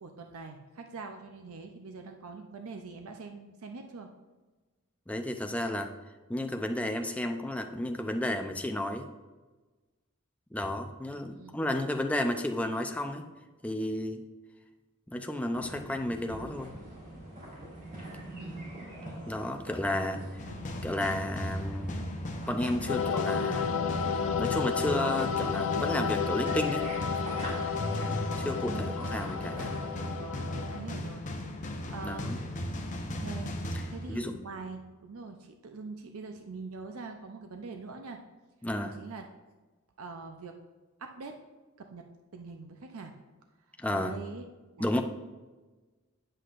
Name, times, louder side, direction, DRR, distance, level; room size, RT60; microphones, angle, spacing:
voice 1, 0.0-4.1 11.1-11.6 18.4-18.7 20.0-20.7 28.7-29.0 30.0-32.3 32.9-38.2 38.8-39.3 40.0-40.6 41.0-41.4 41.8-42.0 42.3-43.1 43.9-44.4 44.7-45.0, right 4 dB, 80° right, 4 dB, 0.6 m, -44 dB
voice 2, 5.1-5.9 6.3-9.1 10.5-13.2 13.6-14.2 15.1-16.8 19.3-20.2 20.8-22.0 22.5-23.7 24.4-26.9 28.4-29.8 32.0-32.4 34.1-34.3 38.6-38.9 43.8-44.2 44.8-45.0, left 1 dB, 5° left, 5 dB, 0.5 m, -32 dB
sound 1, 15.5-30.0, right 1 dB, 40° right, 2.4 m, -45 dB
sound 2, 20.4-34.6, left 1 dB, 35° left, 0.8 m, -37 dB
sound 3, 22.9-30.8, left 6 dB, 70° left, 0.5 m, -32 dB
8.3 x 7.6 x 2.5 m, 1.2 s
head